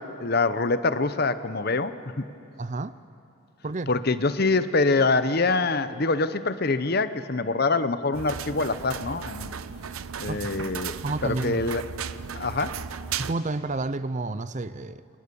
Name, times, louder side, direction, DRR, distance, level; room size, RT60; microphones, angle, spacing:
voice 1, 0.0-2.3 3.9-9.5 10.2-10.9 11.2-11.8 12.3-12.8, left 3 dB, 45° left, 12 dB, 0.9 m, -25 dB
voice 2, 2.6-3.0 3.6-3.9 10.3-10.7 11.0-11.7 13.2-15.0, right 2 dB, 35° right, 14 dB, 0.5 m, -30 dB
sound 1, 8.1-13.3, right 7 dB, 80° right, 0.8 m, -35 dB
29.5 x 26.5 x 7.0 m, 2.7 s
head